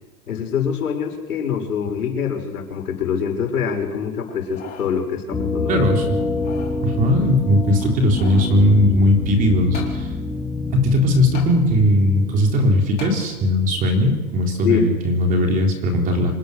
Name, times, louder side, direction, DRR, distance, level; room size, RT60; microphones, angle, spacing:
voice 1, 0.3-5.8 14.6-14.9, left 7 dB, 85° left, 3 dB, 6.1 m, -24 dB
sound 1, 4.3-4.9 5.4-5.5 6.2-6.8 7.8-8.6 9.7-10.0 11.3-11.5 13.0-13.2 13.8-13.9, left 8 dB, 20° left, 4.3 m, -38 dB
sound 2, 5.3-14.0, left 3 dB, 5° left, 2.5 m, -27 dB
voice 2, 5.7-6.2 6.8-10.1 10.7-16.3, left 1 dB, 20° right, 2 dB, 3.6 m, -18 dB
26.5 x 19.0 x 6.7 m, 1.2 s
hypercardioid pair, 165°, 43 cm